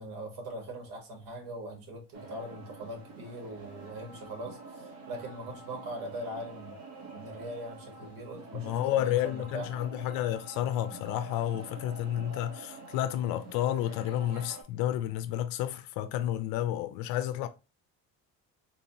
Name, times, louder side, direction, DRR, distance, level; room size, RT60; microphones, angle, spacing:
voice 1, 0.0-6.7 7.1-9.7, right 1 dB, 75° right, 1.9 m, -41 dB
sound 1, 2.1-14.6, right 3 dB, 55° right, 1.3 m, -47 dB
voice 2, 8.5-17.5, left 12 dB, 80° left, 0.5 m, -31 dB
3.9 x 2.8 x 2.7 m
cardioid pair, 140°, 34 cm